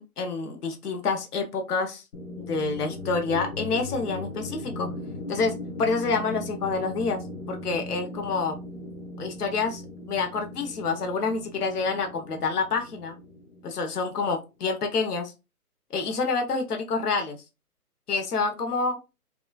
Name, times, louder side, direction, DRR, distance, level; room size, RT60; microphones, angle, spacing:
voice 1, 0.0-2.0 2.4-4.9 5.3-7.2 7.5-8.6 9.2-9.8 10.1-13.2 13.6-15.3 15.9-17.4 18.1-19.0, left 4 dB, 75° left, 5 dB, 1.0 m, -28 dB
sound 1, 2.1-14.3, left 2 dB, 50° left, 1.5 m, -38 dB
4.0 x 2.4 x 2.3 m, 0.27 s
hypercardioid pair, 150°, 46 cm